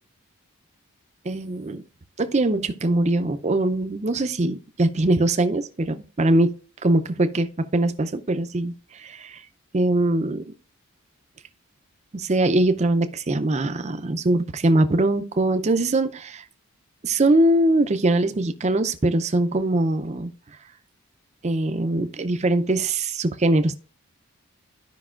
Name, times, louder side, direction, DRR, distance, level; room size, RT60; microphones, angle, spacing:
voice 1, 1.3-1.8 2.2-6.5 6.8-7.5 7.7-9.4 9.7-10.5 12.1-16.4 17.0-20.3 21.4-23.7, right 2 dB, 30° right, 0.5 m, -22 dB
13.5 x 5.3 x 2.4 m
head